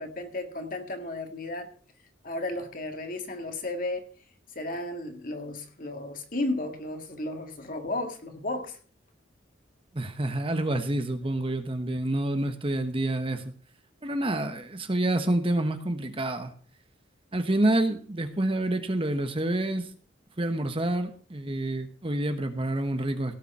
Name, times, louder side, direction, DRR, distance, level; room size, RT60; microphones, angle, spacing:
voice 1, 0.0-1.7 2.2-4.1 4.5-8.8, left 2 dB, 45° left, 5 dB, 2.1 m, -34 dB
voice 2, 9.9-13.5 14.0-16.5 17.3-19.9 20.4-23.3, right 1 dB, 30° right, 8 dB, 1.1 m, -28 dB
17.0 x 7.0 x 5.5 m, 0.43 s
head